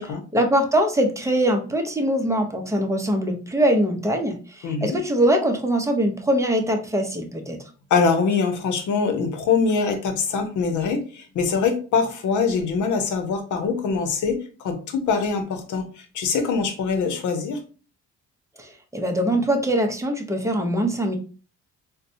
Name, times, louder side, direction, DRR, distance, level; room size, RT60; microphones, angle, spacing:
voice 1, 0.3-7.6 18.6-21.2, right 1 dB, 10° right, 3 dB, 0.7 m, -22 dB
voice 2, 4.6-5.0 7.9-15.9 16.1-17.6, left 5 dB, 75° left, 6 dB, 0.8 m, -23 dB
4.0 x 2.2 x 2.6 m, 0.37 s
cardioid pair, 90°, 30 cm